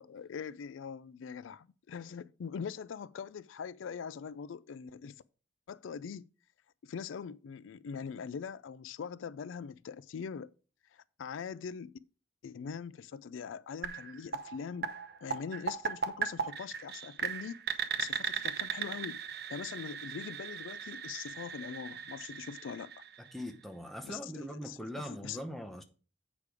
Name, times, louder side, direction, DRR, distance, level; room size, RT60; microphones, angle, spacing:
voice 1, 0.0-5.2 5.7-6.3 6.8-10.5 10.9-12.0 12.4-14.9 15.2-19.2 19.5-22.9 24.0-25.4, left 6 dB, 90° left, 0.4 m, -42 dB
sound 1, 13.8-23.6, right 7 dB, 55° right, 0.7 m, -38 dB
voice 2, 23.2-25.8, equal, ahead, 0.8 m, -41 dB
8.3 x 5.1 x 4.8 m
head